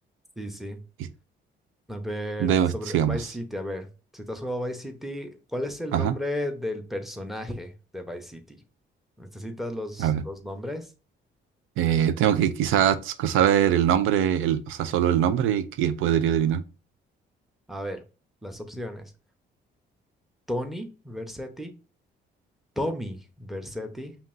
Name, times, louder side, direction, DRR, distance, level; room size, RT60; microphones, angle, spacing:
voice 1, 0.4-0.8 1.9-8.6 9.2-10.9 17.7-18.0 18.4-19.1 20.5-21.8 22.8-24.2, left 1 dB, ahead, 0.8 m, -34 dB
voice 2, 2.4-3.3 5.9-6.1 10.0-10.2 11.8-16.6, right 9 dB, 85° right, 0.4 m, -22 dB
5.2 x 2.9 x 2.6 m
cardioid pair, 90°, 20 cm